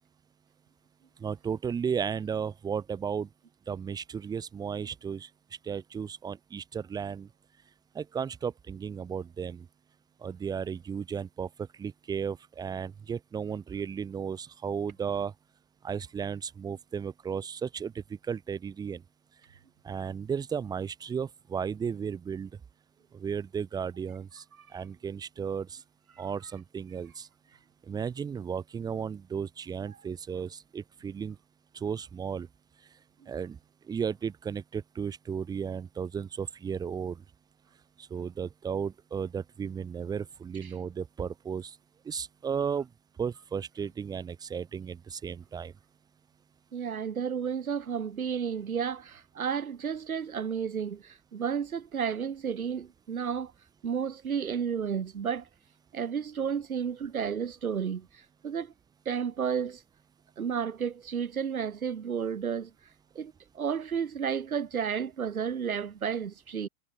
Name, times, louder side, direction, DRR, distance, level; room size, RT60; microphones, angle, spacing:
voice 1, 1.2-3.3 3.7-5.3 5.6-7.3 7.9-9.7 10.2-15.3 15.8-17.9 18.3-19.0 19.8-22.5 23.1-24.4 24.7-25.8 26.2-27.3 27.9-31.4 31.7-32.5 33.3-33.6 33.9-37.2 38.1-41.8 42.1-42.9 43.2-45.7, right 7 dB, 10° right, 0.7 m, -34 dB
voice 2, 46.7-53.5 53.8-55.5 55.9-58.1 58.4-58.7 59.1-59.8 60.4-62.7 63.2-66.7, right 7 dB, 70° right, 2.3 m, -32 dB
figure-of-eight pair, 100°, 44 cm